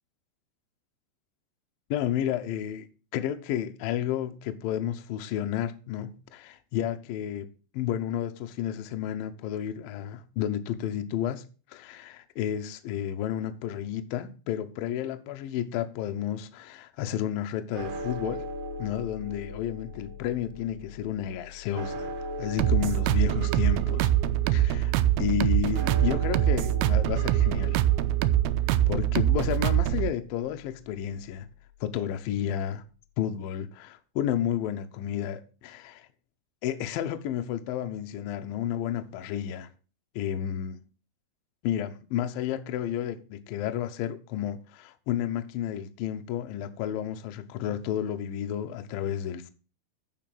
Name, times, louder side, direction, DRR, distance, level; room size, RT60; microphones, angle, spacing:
voice 1, 1.9-2.9 3.1-7.5 7.7-18.5 18.8-22.1 22.4-24.1 24.5-27.8 28.9-31.5 31.8-32.8 33.2-36.1 36.6-39.7 40.2-40.8 41.6-49.5, left 10 dB, 85° left, 2.0 m, -31 dB
sound 1, 17.7-32.0, left 1 dB, 65° right, 2.3 m, -40 dB
sound 2, 22.6-30.1, right 13 dB, 80° right, 2.7 m, -24 dB
9.1 x 5.6 x 7.6 m
omnidirectional pair, 5.4 m